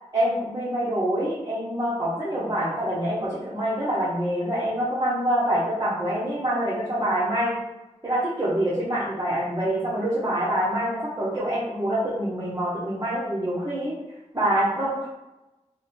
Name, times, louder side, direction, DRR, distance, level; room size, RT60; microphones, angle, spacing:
voice 1, 0.1-7.6 8.0-14.0 14.3-15.1, right 1 dB, 30° right, -8 dB, 1.0 m, -25 dB
3.5 x 2.2 x 4.3 m, 0.98 s
wide cardioid pair, 60°, 12 cm